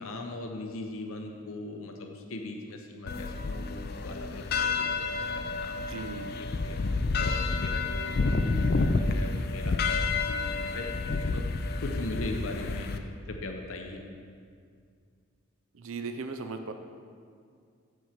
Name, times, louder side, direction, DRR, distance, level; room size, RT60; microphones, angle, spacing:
voice 1, 0.0-5.8 6.6-11.4 11.8-14.0, left 2 dB, 75° left, 3 dB, 0.8 m, -40 dB
sound 1, 3.1-13.0, left 3 dB, 45° left, 0.4 m, -29 dB
voice 2, 5.8-6.3 15.7-16.7, right 4 dB, 75° right, 6 dB, 0.5 m, -37 dB
7.9 x 4.6 x 7.3 m, 2.2 s
head